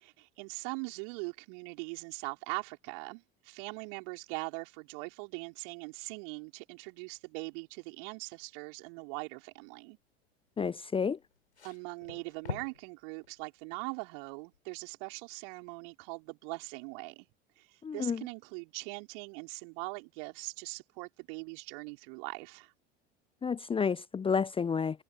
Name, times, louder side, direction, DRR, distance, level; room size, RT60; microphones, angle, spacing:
voice 1, 0.0-10.0 11.6-17.3 17.6-22.7, right 33 dB, 55° right, 5.1 m, -41 dB
voice 2, 10.6-11.2 17.8-18.2 23.4-25.0, left 6 dB, 15° left, 0.8 m, -30 dB
sound 1, 11.2-12.9 13.2-13.4 14.5-14.6, left 5 dB, 80° left, 4.4 m, -43 dB
figure-of-eight pair, 70°, 33 cm